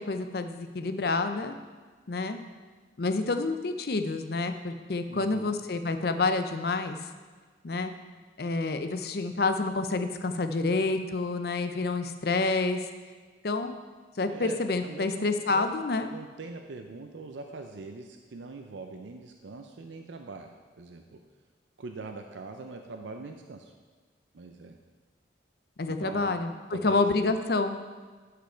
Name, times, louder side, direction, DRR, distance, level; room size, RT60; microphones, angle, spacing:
voice 1, 0.0-1.6 2.1-2.4 3.0-7.0 7.6-7.9 8.4-12.8 13.4-13.7 14.2-16.1 25.8-27.8, left 3 dB, 55° left, 8 dB, 0.5 m, -28 dB
voice 2, 5.1-5.6 14.3-15.7 16.0-21.0 21.8-23.7 24.3-24.8 25.9-26.4 26.7-27.1, right 3 dB, 80° right, 5 dB, 0.5 m, -42 dB
11.5 x 5.1 x 4.5 m, 1.4 s
head